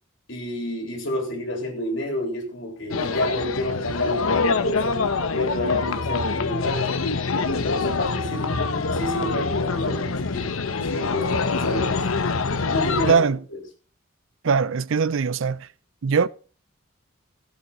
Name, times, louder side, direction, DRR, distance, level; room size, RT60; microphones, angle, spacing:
voice 1, 0.3-5.0 5.3-6.9 7.3-10.5 10.8-12.0 12.7-13.3 13.5-13.6, left 1 dB, 60° left, 3.9 m, -29 dB
sound 1, 2.9-13.1, left 4 dB, 85° left, 1.0 m, -25 dB
voice 2, 13.1-13.4 14.4-15.7 16.0-16.3, right 5 dB, 65° right, 0.5 m, -21 dB
18.0 x 8.1 x 4.3 m
head